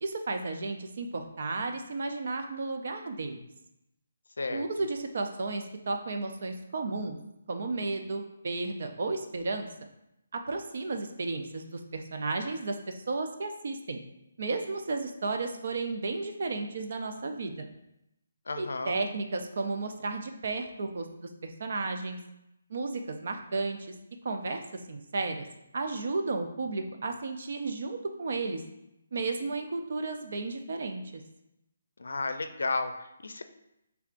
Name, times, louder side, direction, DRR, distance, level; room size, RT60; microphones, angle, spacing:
voice 1, 0.0-3.4 4.5-7.2 7.5-9.7 10.3-14.0 14.4-17.7 18.6-22.2 22.7-23.8 24.2-25.5 25.7-28.6 29.1-31.2, right 3 dB, 45° right, 5 dB, 0.5 m, -33 dB
voice 2, 18.5-19.0 32.0-33.4, left 3 dB, 90° left, 9 dB, 0.5 m, -33 dB
5.9 x 3.4 x 2.5 m, 0.87 s
hypercardioid pair, 175°, 0 cm